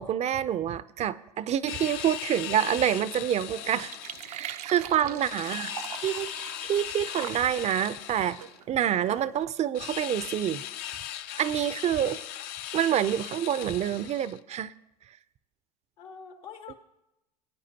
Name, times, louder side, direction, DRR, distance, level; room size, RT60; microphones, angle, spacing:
voice 1, 0.0-3.9 4.3-5.7 6.0-8.4 8.7-10.6 11.4-12.2 12.7-14.7, right 10 dB, 35° right, 0.4 m, -27 dB
sound 1, 1.7-4.3 5.2-8.6 9.7-14.4, left 12 dB, 60° left, 0.6 m, -38 dB
sound 2, 2.3-9.4, right 10 dB, 90° right, 0.6 m, -44 dB
voice 2, 4.8-5.9 16.0-16.7, left 6 dB, 80° left, 1.6 m, -47 dB
21.0 x 9.3 x 2.8 m
hypercardioid pair, 90°, 19 cm